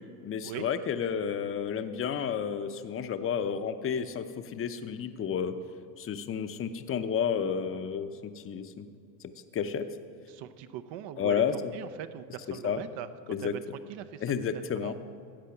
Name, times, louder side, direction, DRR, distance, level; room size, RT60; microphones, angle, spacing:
voice 1, 0.2-5.5 6.0-8.9 9.5-9.9 11.2-11.7 12.6-12.8 13.3-13.5 14.2-14.9, left 7 dB, 25° left, 10 dB, 0.7 m, -31 dB
voice 2, 10.3-13.6 13.9-14.2 14.5-14.9, right 10 dB, 60° right, 12 dB, 0.8 m, -41 dB
13.5 x 8.4 x 5.9 m, 2.3 s
supercardioid pair, 105°, 50 cm